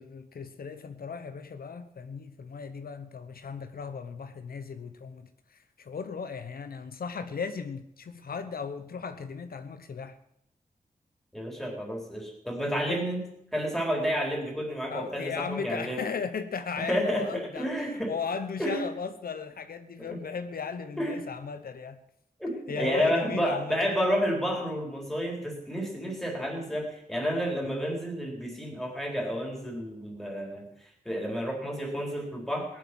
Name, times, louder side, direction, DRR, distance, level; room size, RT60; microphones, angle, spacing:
voice 1, 0.0-10.2 12.9-13.0 14.9-22.0 22.7-23.8, left 5 dB, 80° left, 9 dB, 1.0 m, -36 dB
voice 2, 11.3-13.2 13.5-16.0 16.8-18.1 18.6-18.8 20.0-20.2 21.0-21.2 22.4-30.7 31.1-32.8, equal, ahead, 0 dB, 4.0 m, -30 dB
18.5 x 10.5 x 6.2 m, 0.76 s
wide cardioid pair, 150°, 15 cm